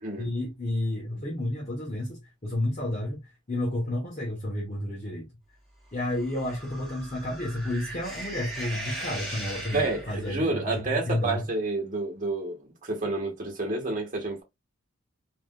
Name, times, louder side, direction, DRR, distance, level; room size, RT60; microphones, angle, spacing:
voice 1, 0.2-5.3 5.9-11.4, left 1 dB, 35° left, 0.8 m, -31 dB
sound 1, 6.0-10.3, right 1 dB, ahead, 1.2 m, -39 dB
voice 2, 9.7-14.4, right 2 dB, 40° right, 1.3 m, -29 dB
3.3 x 2.6 x 2.2 m
head